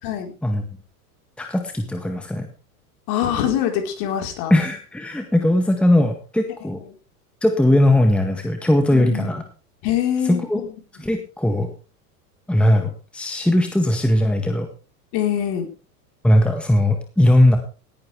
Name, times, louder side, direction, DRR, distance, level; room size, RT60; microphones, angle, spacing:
voice 1, 1.4-2.5 4.5-6.8 7.4-9.4 10.3-10.6 11.0-11.7 12.5-14.7 16.2-17.6, left 1 dB, ahead, 5 dB, 1.7 m, -19 dB
voice 2, 3.1-4.5 6.9-7.0 8.9-9.4 9.8-10.5 15.1-15.7, left 10 dB, 50° left, 3 dB, 4.7 m, -24 dB
18.0 x 11.0 x 3.5 m, 0.35 s
hypercardioid pair, 105°, 46 cm